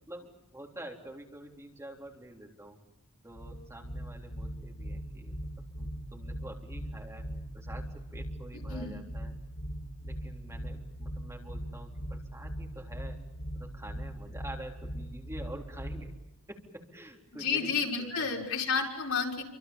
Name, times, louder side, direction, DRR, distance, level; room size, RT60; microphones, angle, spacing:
voice 1, 0.1-2.8 3.2-5.4 5.8-7.3 7.5-9.4 10.0-13.3 13.5-16.1 16.5-17.7 18.0-18.3, right 1 dB, 15° right, 0 dB, 3.8 m, -47 dB
sound 1, 3.3-16.2, equal, 55° left, 7.2 m, -39 dB
voice 2, 17.3-19.4, left 5 dB, 75° left, 0 dB, 5.6 m, -31 dB
28.5 x 25.5 x 7.2 m, 0.87 s
head